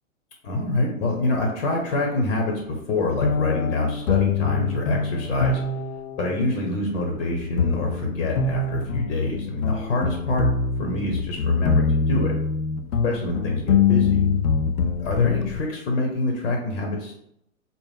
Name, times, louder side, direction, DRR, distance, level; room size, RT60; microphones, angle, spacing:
voice 1, 0.4-5.6 6.2-10.5 10.8-12.3 13.0-14.2 14.8-17.1, left 2 dB, 60° left, 1 dB, 1.0 m, -26 dB
sound 1, 3.2-15.6, left 5 dB, 90° left, 0.5 m, -24 dB
4.2 x 2.1 x 3.5 m, 0.74 s
hypercardioid pair, 130°, 42 cm